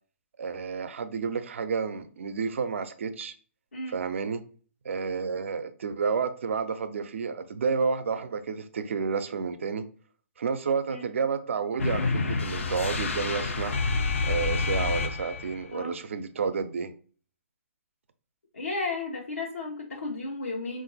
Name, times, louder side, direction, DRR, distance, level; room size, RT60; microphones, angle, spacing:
voice 1, 0.4-3.3 3.9-4.4 4.8-9.8 10.4-13.7 14.2-16.9, right 5 dB, 65° right, 0.5 m, -30 dB
sound 1, 11.8-15.6, left 3 dB, 70° left, 0.6 m, -28 dB
voice 2, 18.5-20.8, left 3 dB, 85° left, 0.9 m, -33 dB
3.8 x 2.5 x 3.9 m
figure-of-eight pair, 130°, 7 cm